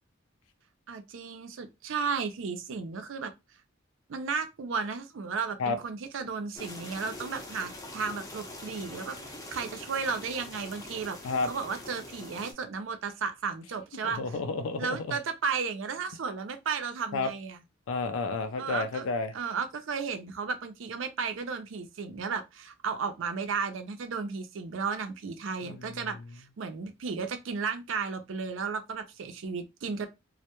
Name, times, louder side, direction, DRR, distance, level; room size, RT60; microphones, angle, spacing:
voice 1, 0.9-3.3 4.1-14.4 14.8-17.6 18.6-19.1 19.3-30.1, right 5 dB, 70° right, 0.5 m, -34 dB
sound 1, 6.5-12.5, left 1 dB, 20° left, 0.5 m, -44 dB
voice 2, 14.2-15.2 17.1-17.3 17.9-19.3 25.6-26.1, left 3 dB, 80° left, 0.4 m, -31 dB
2.2 x 2.0 x 2.8 m
head